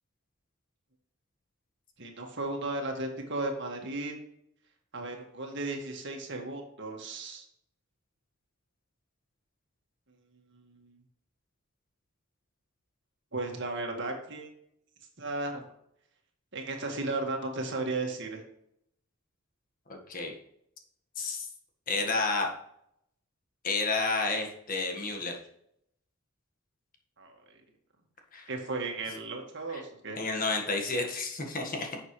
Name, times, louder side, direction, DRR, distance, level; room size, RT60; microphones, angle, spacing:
voice 1, 2.0-4.1 4.9-7.4 10.5-11.0 13.3-14.5 15.2-15.6 16.5-18.4 27.2-27.3 28.5-30.2, right 2 dB, 60° right, 2 dB, 1.9 m, -35 dB
voice 2, 21.2-21.5 21.9-22.5 23.6-25.3 28.3-28.5 29.7-29.8 30.2-32.0, left 3 dB, 40° left, 2 dB, 1.6 m, -30 dB
10.5 x 6.7 x 3.3 m, 0.74 s
head